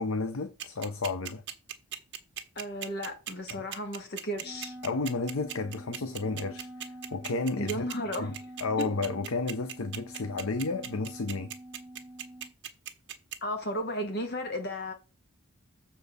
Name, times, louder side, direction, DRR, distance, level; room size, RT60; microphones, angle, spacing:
voice 1, 0.0-1.4 3.5-3.6 4.8-6.7 7.1-7.9 8.2-11.5, left 3 dB, 85° left, 0.8 m, -32 dB
sound 1, 0.6-13.4, right 11 dB, 60° right, 1.2 m, -38 dB
voice 2, 2.6-4.8 7.6-8.3 8.8-8.9 13.4-14.9, equal, 50° left, 1.8 m, -34 dB
Wind instrument woodwind instrument, 4.4-12.5, right 1 dB, 10° right, 1.5 m, -46 dB
6.8 x 4.4 x 6.7 m
head